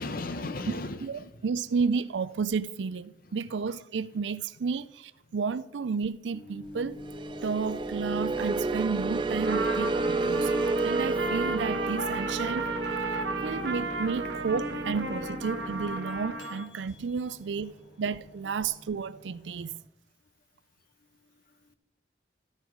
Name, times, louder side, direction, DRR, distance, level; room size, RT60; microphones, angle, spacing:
voice 1, 0.0-1.5 7.4-7.5 21.0-21.8, left 2 dB, 55° left, 0.8 m, -38 dB
voice 2, 1.0-7.0 7.4-10.5 10.8-12.7 13.1-19.8, right 5 dB, 90° right, 0.4 m, -32 dB
Microwave oven, 6.3-19.8, left 1 dB, 85° left, 2.9 m, -44 dB
sound 1, 7.0-16.0, right 3 dB, 25° right, 0.4 m, -31 dB
Trumpet, 9.4-16.7, right 3 dB, 70° right, 1.4 m, -34 dB
14.0 x 5.5 x 4.6 m
head